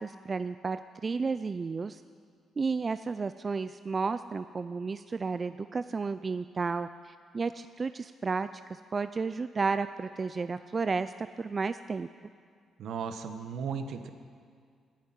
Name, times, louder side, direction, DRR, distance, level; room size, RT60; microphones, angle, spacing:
voice 1, 0.0-2.0 2.6-12.1, right 4 dB, 35° right, 12 dB, 0.3 m, -32 dB
voice 2, 12.8-14.1, right 6 dB, 70° right, 8 dB, 1.1 m, -36 dB
11.5 x 10.5 x 9.2 m, 2.1 s
cardioid pair, 90°, 0 cm